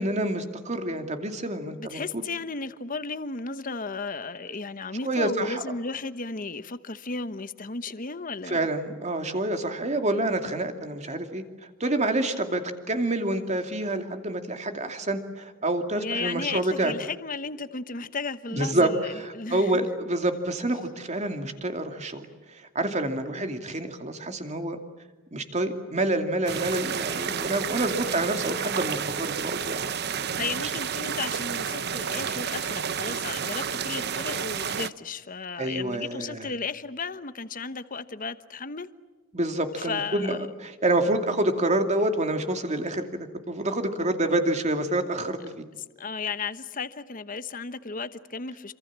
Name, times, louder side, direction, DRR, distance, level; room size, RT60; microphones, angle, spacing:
voice 1, 0.0-2.0 5.0-5.6 8.5-11.4 11.8-12.6 12.9-16.9 18.5-18.9 19.2-24.8 25.3-29.8 35.6-36.5 39.3-43.0 43.5-45.6, right 1 dB, 35° right, 2.6 m, -27 dB
voice 2, 1.8-8.7 16.0-19.9 23.3-23.6 30.3-38.9 39.8-40.5 46.0-48.7, left 4 dB, 40° left, 1.1 m, -34 dB
sound 1, 26.5-34.9, right 7 dB, 55° right, 0.9 m, -31 dB
27.5 x 26.5 x 7.5 m
head